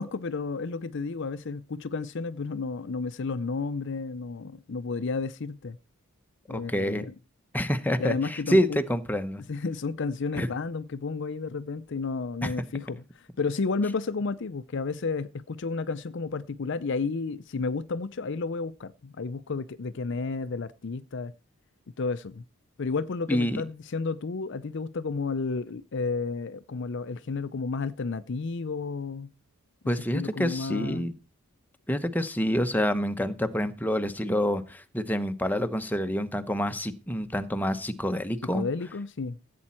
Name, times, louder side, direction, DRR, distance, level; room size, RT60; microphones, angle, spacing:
voice 1, 0.0-5.8 6.5-7.1 8.0-8.8 9.4-21.3 22.0-22.4 22.8-29.3 30.1-31.1 38.5-39.4, left 4 dB, 55° left, 0.5 m, -32 dB
voice 2, 6.5-7.1 7.5-9.4 10.3-10.5 12.4-12.5 23.3-23.6 29.9-31.1 31.9-38.6, equal, 10° left, 0.9 m, -27 dB
15.5 x 8.5 x 4.4 m
head